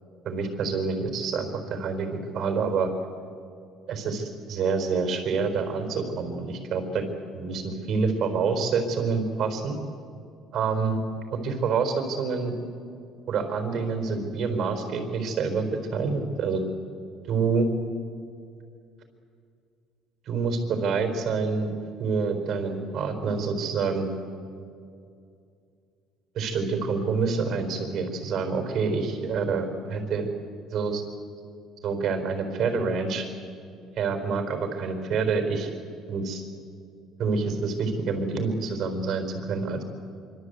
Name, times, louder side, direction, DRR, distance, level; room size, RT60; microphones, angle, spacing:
voice 1, 0.2-2.9 3.9-7.0 7.3-9.8 10.5-11.0 11.3-12.5 13.3-15.7 15.9-16.6 17.3-17.7 20.3-21.7 22.0-24.1 26.3-30.3 30.7-31.0 31.8-33.3 34.0-35.7 36.1-36.4 37.2-39.8, right 4 dB, 55° right, 6 dB, 4.3 m, -27 dB
25.0 x 25.0 x 8.2 m, 2.4 s
cardioid pair, 125°, 0 cm